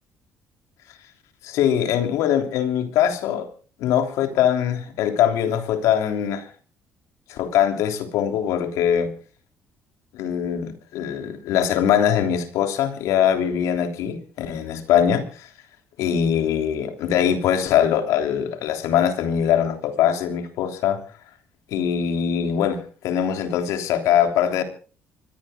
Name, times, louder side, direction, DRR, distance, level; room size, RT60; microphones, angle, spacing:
voice 1, 1.4-3.5 3.8-6.5 7.3-9.1 10.1-15.2 16.0-21.0 21.7-24.6, left 9 dB, 75° left, 3.4 m, -22 dB
25.5 x 21.5 x 2.4 m
hypercardioid pair, 55°, 5 cm